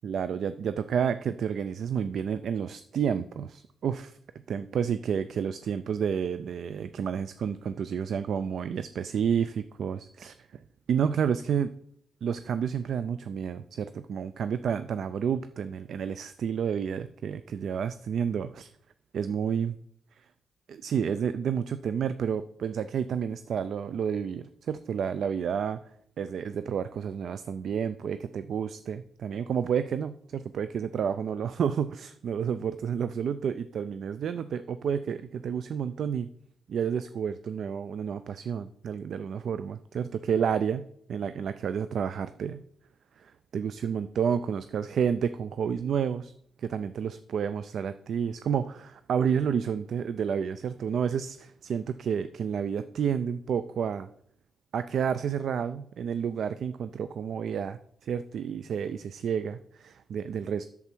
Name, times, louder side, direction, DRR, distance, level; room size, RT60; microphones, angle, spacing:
voice 1, 0.0-4.2 4.5-10.6 10.9-11.7 12.2-18.7 19.1-19.8 20.7-25.8 26.2-36.3 36.7-42.6 43.2-46.3 46.6-54.1 54.7-60.6, right 7 dB, 70° right, 13 dB, 0.4 m, -30 dB
8.3 x 7.0 x 4.5 m, 0.66 s
cardioid pair, 65°, 0 cm